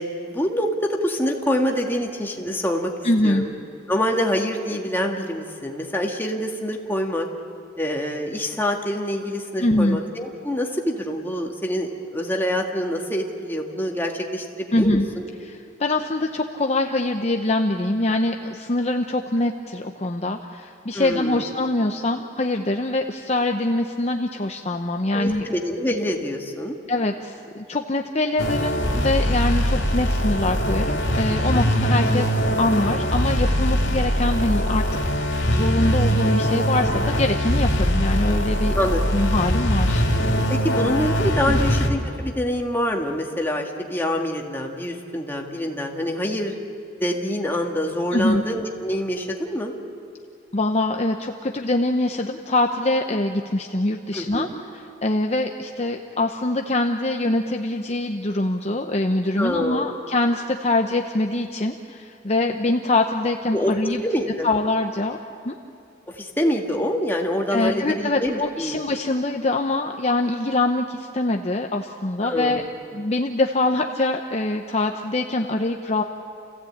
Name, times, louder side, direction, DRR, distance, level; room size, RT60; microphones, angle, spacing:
voice 1, 0.0-3.5 3.9-7.3 7.8-15.0 20.9-21.4 25.1-26.8 31.5-31.7 38.7-39.0 40.5-46.5 47.0-49.7 54.1-54.5 59.4-59.9 63.5-63.8 64.0-64.5 66.1-68.8 72.2-72.7, equal, 10° left, 0 dB, 1.9 m, -26 dB
voice 2, 3.0-3.5 9.6-10.0 14.7-15.1 15.4-25.5 26.9-38.7 39.1-40.1 41.5-41.6 48.1-48.4 50.5-54.5 54.7-64.0 64.4-65.2 65.4-65.5 67.5-72.6 72.9-76.0, left 2 dB, 35° left, 3 dB, 0.8 m, -24 dB
sound 1, 28.4-41.9, equal, 65° left, 2.8 m, -22 dB
29.5 x 16.0 x 8.7 m, 2.5 s
head